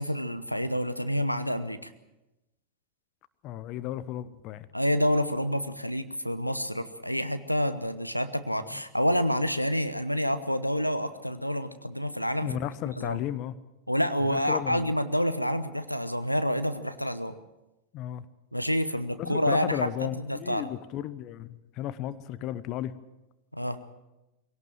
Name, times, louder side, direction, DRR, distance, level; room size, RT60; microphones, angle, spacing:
voice 1, 0.0-1.9 4.7-12.6 13.0-13.2 13.9-17.3 18.5-20.7 23.5-23.8, equal, 90° left, 11 dB, 1.0 m, -28 dB
voice 2, 3.4-4.7 8.7-8.8 12.4-13.5 14.3-14.9 17.9-18.2 19.2-22.9, left 12 dB, 40° left, 15 dB, 0.9 m, -34 dB
22.5 x 17.5 x 7.7 m, 0.99 s
figure-of-eight pair, 90°, 0 cm